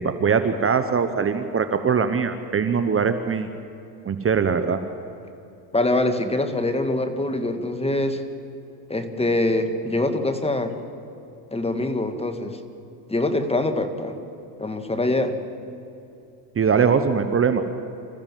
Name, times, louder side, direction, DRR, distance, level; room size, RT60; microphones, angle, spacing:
voice 1, 0.0-3.5 4.0-4.8 16.6-17.6, right 6 dB, 25° right, 9 dB, 1.2 m, -21 dB
voice 2, 5.7-8.2 8.9-10.7 11.5-12.6 13.1-14.2 14.6-15.4, left 2 dB, 10° left, 8 dB, 1.9 m, -24 dB
26.5 x 15.0 x 7.6 m, 2.8 s
supercardioid pair, 95°, 49 cm